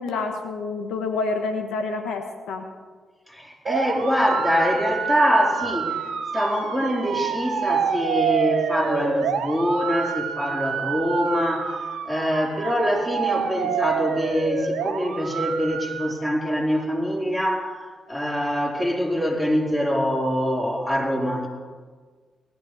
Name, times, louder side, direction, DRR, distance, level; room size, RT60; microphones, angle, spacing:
voice 1, 0.0-2.7, left 3 dB, 80° left, 5 dB, 1.3 m, -28 dB
voice 2, 3.3-6.1 6.3-21.5, equal, 5° left, -1 dB, 4.2 m, -24 dB
sound 1, 3.7-16.1, right 7 dB, 80° right, 1.0 m, -28 dB
18.0 x 12.5 x 4.9 m, 1.5 s
supercardioid pair, 45°, 0 cm